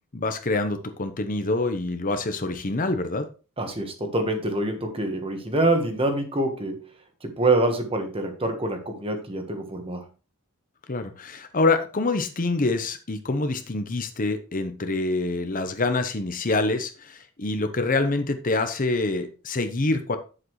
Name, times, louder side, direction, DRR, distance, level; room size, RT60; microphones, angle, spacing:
voice 1, 0.1-3.3 10.9-20.2, left 2 dB, 40° left, 8 dB, 0.8 m, -26 dB
voice 2, 3.6-6.8 7.2-10.0, right 2 dB, 25° right, 5 dB, 1.4 m, -25 dB
8.6 x 7.7 x 3.1 m, 0.33 s
head